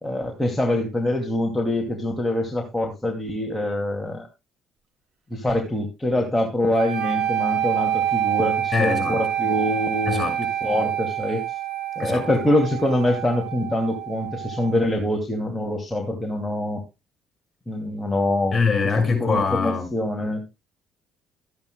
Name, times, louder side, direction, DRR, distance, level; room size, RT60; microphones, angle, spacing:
voice 1, 0.0-4.3 5.3-11.4 12.0-16.8 17.7-18.6 19.2-20.4, left 1 dB, 10° left, 2.5 m, -24 dB
sound 1, 6.7-14.8, right 11 dB, 60° right, 2.8 m, -27 dB
voice 2, 8.7-9.3 10.0-10.4 12.0-12.3 18.5-19.9, left 5 dB, 30° left, 6.2 m, -23 dB
13.5 x 10.5 x 2.2 m
cardioid pair, 95°, 0 cm